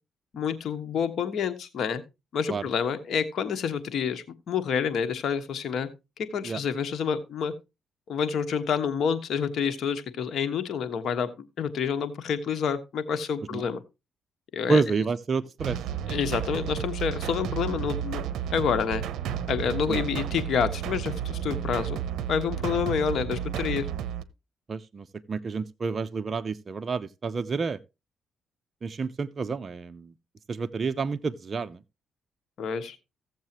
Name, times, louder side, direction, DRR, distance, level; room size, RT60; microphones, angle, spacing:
voice 1, 0.3-2.0 2.3-5.9 6.2-7.5 8.1-11.3 11.6-13.8 14.5-14.8 16.1-18.2 18.5-19.0 19.5-22.0 22.3-23.9 32.6-33.0, left 7 dB, 65° left, 1.3 m, -28 dB
voice 2, 14.7-15.8 19.9-20.0 24.7-27.8 28.8-30.1 30.5-31.8, right 4 dB, 40° right, 0.5 m, -29 dB
sound 1, 15.6-24.2, right 10 dB, 80° right, 0.7 m, -32 dB
15.5 x 7.4 x 2.9 m
cardioid pair, 90°, 0 cm